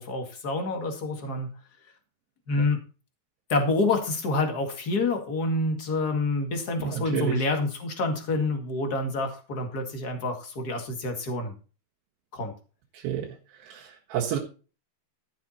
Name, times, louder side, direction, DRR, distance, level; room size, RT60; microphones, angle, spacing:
voice 1, 0.0-1.5 2.5-2.8 3.5-11.5 12.3-12.5, left 2 dB, 40° left, 5 dB, 1.5 m, -27 dB
voice 2, 6.8-7.4 13.0-13.3 13.7-14.4, right 10 dB, 85° right, -3 dB, 3.9 m, -29 dB
13.0 x 7.6 x 4.4 m, 0.35 s
omnidirectional pair, 4.8 m